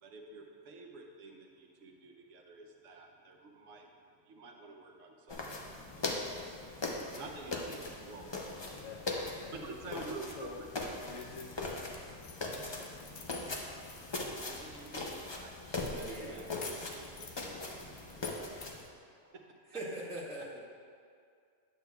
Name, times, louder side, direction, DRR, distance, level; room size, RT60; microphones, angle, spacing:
voice 1, 0.0-8.9 9.5-10.7 14.5-18.8 19.1-19.8, right 3 dB, 75° right, 2 dB, 1.1 m, -50 dB
sound 1, 5.3-18.8, left 2 dB, 35° left, 0.4 m, -40 dB
voice 2, 8.7-9.6 9.9-10.6 11.1-11.9, left 4 dB, 80° left, 2 dB, 1.1 m, -47 dB
sound 2, 11.1-15.2 15.7-18.9, left 5 dB, 55° left, 0.9 m, -50 dB
voice 3, 15.9-16.6 19.7-20.6, right 1 dB, 5° left, -9 dB, 1.4 m, -42 dB
8.8 x 7.9 x 2.3 m, 2.3 s
omnidirectional pair, 1.3 m